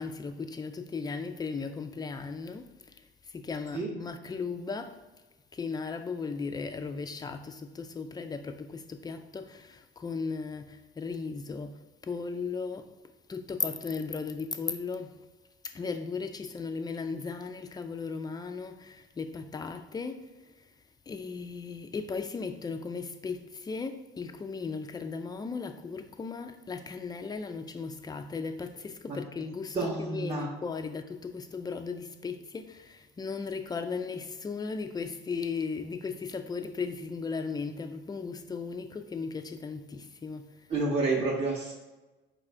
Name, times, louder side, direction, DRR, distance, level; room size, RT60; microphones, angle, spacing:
voice 1, 0.0-5.0 5.5-12.9 13.3-15.2 15.6-20.3 21.1-40.7, left 4 dB, 15° left, 0.4 m, -36 dB
voice 2, 29.7-30.5 40.7-41.7, right 3 dB, 20° right, 0.8 m, -29 dB
5.3 x 2.4 x 3.3 m
hypercardioid pair, 60°, 30 cm